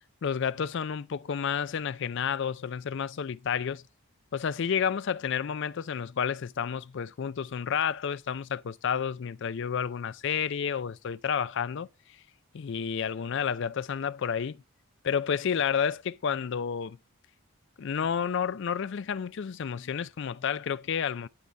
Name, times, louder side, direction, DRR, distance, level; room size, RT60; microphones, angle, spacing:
voice 1, 0.2-3.8 4.3-11.9 12.5-14.6 15.0-17.0 17.8-21.3, left 7 dB, 55° left, 0.4 m, -30 dB
11.5 x 4.0 x 4.5 m
head